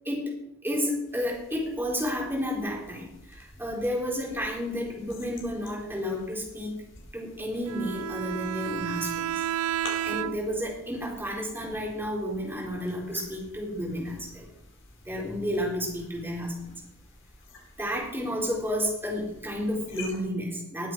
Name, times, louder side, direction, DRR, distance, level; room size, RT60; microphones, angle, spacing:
voice 1, 0.6-6.8 7.1-9.4 10.0-14.5 15.1-16.7 17.8-20.9, equal, 10° right, -2 dB, 3.9 m, -31 dB
sound 1, 1.1-20.2, left 2 dB, 60° left, 4.2 m, -50 dB
Bowed string instrument, 7.7-10.7, right 11 dB, 80° right, 0.3 m, -31 dB
20.0 x 7.9 x 4.6 m, 0.83 s
head